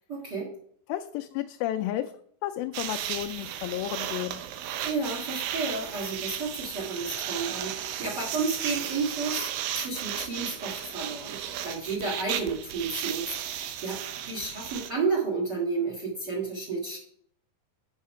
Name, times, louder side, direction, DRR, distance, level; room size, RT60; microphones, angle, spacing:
voice 1, 0.1-0.5 4.8-17.0, right 4 dB, 40° right, -1 dB, 1.8 m, -32 dB
voice 2, 0.9-4.4, left 13 dB, 85° left, 5 dB, 2.4 m, -32 dB
sound 1, 2.7-14.9, right 10 dB, 85° right, 2.5 m, -35 dB
7.5 x 5.7 x 5.5 m, 0.63 s
omnidirectional pair, 4.1 m